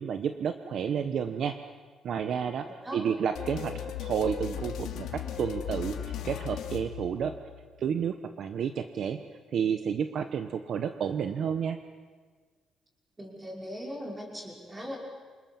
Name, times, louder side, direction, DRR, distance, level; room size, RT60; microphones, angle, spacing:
voice 1, 0.0-1.6 2.0-2.7 2.9-7.3 7.8-9.2 9.5-11.8, right 7 dB, 45° right, 8 dB, 1.1 m, -31 dB
voice 2, 2.7-3.0 13.2-15.0, equal, 10° right, -1 dB, 5.6 m, -39 dB
sound 1, 3.3-7.7, left 9 dB, 75° left, 2.8 m, -37 dB
28.0 x 27.5 x 7.3 m, 1.5 s
cardioid pair, 180°, 0 cm